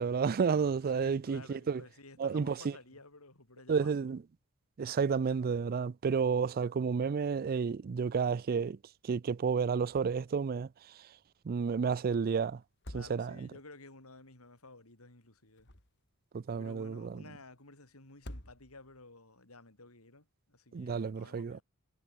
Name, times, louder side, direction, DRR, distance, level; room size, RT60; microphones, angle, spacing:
voice 1, 0.0-1.8 2.2-2.7 3.7-4.2 4.8-8.8 9.1-10.7 11.5-12.6 12.9-13.4 16.3-17.2 20.7-21.6, right 5 dB, 45° right, 0.4 m, -31 dB
voice 2, 0.8-4.1 12.9-15.7 16.6-21.6, left 2 dB, 75° left, 5.2 m, -54 dB
sound 1, 9.9-10.4 10.7-10.8 12.6-13.6 15.3-16.2 18.1-19.0, equal, 55° left, 5.9 m, -49 dB
head